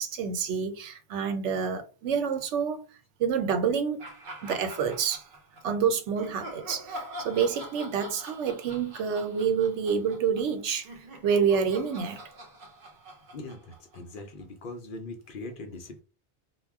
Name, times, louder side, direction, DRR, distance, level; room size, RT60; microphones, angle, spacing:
voice 1, 0.0-2.9 3.2-4.1 4.4-5.2 5.6-10.9 11.2-12.2, right 6 dB, 90° right, 0.9 m, -28 dB
sound 1, 4.0-5.6 6.2-14.4, right 1 dB, 55° right, 0.6 m, -44 dB
voice 2, 13.3-16.0, left 2 dB, 60° left, 0.6 m, -41 dB
2.2 x 2.1 x 3.4 m
omnidirectional pair, 1.2 m